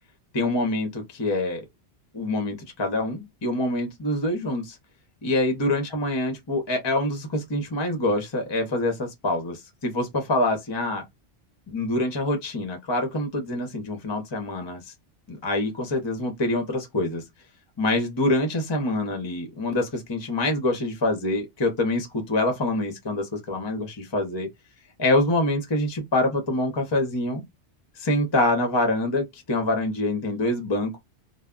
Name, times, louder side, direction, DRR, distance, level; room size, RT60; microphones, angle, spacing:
voice 1, 0.3-1.7 2.1-4.8 5.2-11.0 11.7-14.9 15.3-17.2 17.8-24.5 25.0-27.4 28.0-31.0, left 1 dB, 30° left, 0.6 m, -25 dB
2.2 x 2.1 x 3.6 m
omnidirectional pair, 1.2 m